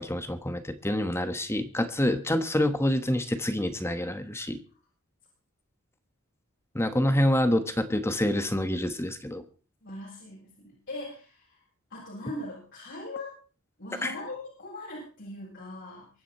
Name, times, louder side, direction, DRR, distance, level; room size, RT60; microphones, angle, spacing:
voice 1, 0.0-4.6 6.7-9.4 14.0-14.1, left 1 dB, 10° left, 9 dB, 1.3 m, -27 dB
voice 2, 9.8-11.5 11.9-13.3 13.8-16.1, left 2 dB, 55° left, -5 dB, 6.7 m, -40 dB
24.0 x 9.8 x 4.3 m, 0.37 s
head